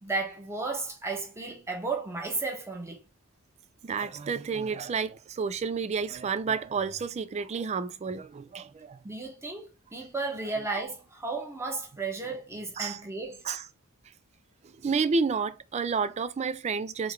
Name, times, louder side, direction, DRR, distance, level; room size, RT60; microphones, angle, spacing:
voice 1, 0.0-3.0 9.0-13.4, right 3 dB, 10° right, 1.1 m, -34 dB
voice 2, 3.8-9.0 12.8-13.0 13.5-13.6 14.8-17.1, right 5 dB, 30° right, 0.3 m, -30 dB
3.7 x 3.2 x 3.1 m
head